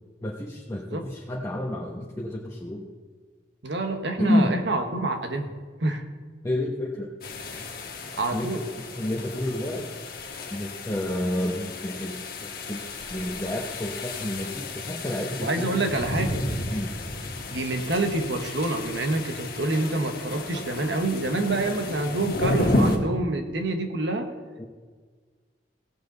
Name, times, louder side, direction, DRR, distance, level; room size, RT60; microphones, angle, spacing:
voice 1, 0.2-2.9 4.2-4.6 6.4-7.1 8.3-10.1 10.5-12.8 13.1-15.9 16.7-16.9 24.6-24.7, left 1 dB, 15° left, -3 dB, 1.0 m, -30 dB
voice 2, 0.7-1.0 3.6-5.5 5.8-6.0 8.1-8.6 15.4-16.4 17.5-24.3, right 2 dB, 90° right, 6 dB, 1.3 m, -27 dB
sound 1, 7.2-23.0, left 2 dB, 55° left, 1.4 m, -32 dB
17.5 x 7.5 x 4.1 m, 1.5 s
head